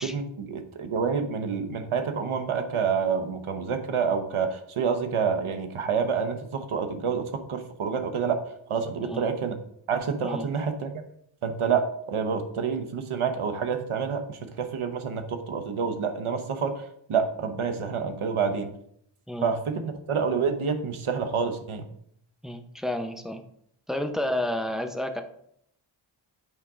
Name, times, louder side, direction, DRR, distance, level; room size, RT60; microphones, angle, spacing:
voice 1, 0.0-8.4 8.7-9.6 9.9-11.0 11.4-18.7 19.4-21.9, right 6 dB, 80° right, 7 dB, 1.0 m, -28 dB
voice 2, 22.4-23.4 23.9-25.2, left 1 dB, ahead, 5 dB, 0.6 m, -30 dB
8.4 x 3.6 x 4.9 m, 0.70 s
wide cardioid pair, 90°, 49 cm